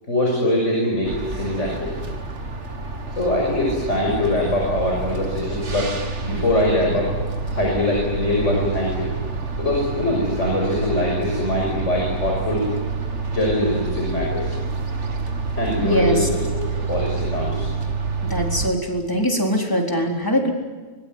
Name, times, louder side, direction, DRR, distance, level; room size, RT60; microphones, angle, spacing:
voice 1, 0.1-2.0 3.1-7.1 7.4-9.1 9.6-12.6 13.3-14.5 15.5-16.4 16.7-17.7, left 1 dB, 85° left, -2 dB, 6.5 m, -22 dB
sound 1, 1.0-18.7, right 4 dB, 75° right, 2.3 m, -28 dB
voice 2, 15.8-16.3 18.2-20.5, equal, 15° left, 1 dB, 4.1 m, -22 dB
24.5 x 22.0 x 9.7 m, 1.4 s
omnidirectional pair, 1.2 m